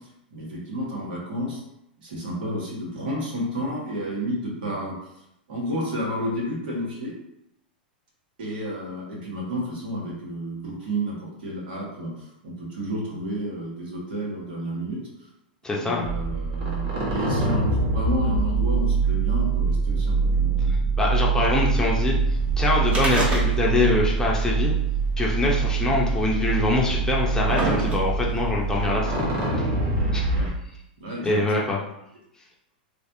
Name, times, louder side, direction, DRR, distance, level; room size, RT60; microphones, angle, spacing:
voice 1, 0.3-1.6 2.0-4.9 5.5-7.1 8.4-15.3 15.8-20.7 25.8-25.9 30.3-30.5 31.0-31.4, equal, 70° right, -3 dB, 1.5 m, -31 dB
voice 2, 15.6-16.0 20.7-22.2 22.6-24.7 25.2-29.2 29.6-29.7 30.1-30.2 31.2-31.8, left 3 dB, 10° left, -3 dB, 0.7 m, -24 dB
sound 1, 16.0-30.5, right 4 dB, 50° right, 1.3 m, -24 dB
sound 2, 22.9-23.9 24.2-24.3 25.2-25.3 26.2-26.3 27.0-28.4 29.2-29.3, right 1 dB, 20° right, 1.0 m, -27 dB
3.2 x 3.2 x 2.7 m, 0.81 s
hypercardioid pair, 110°, 5 cm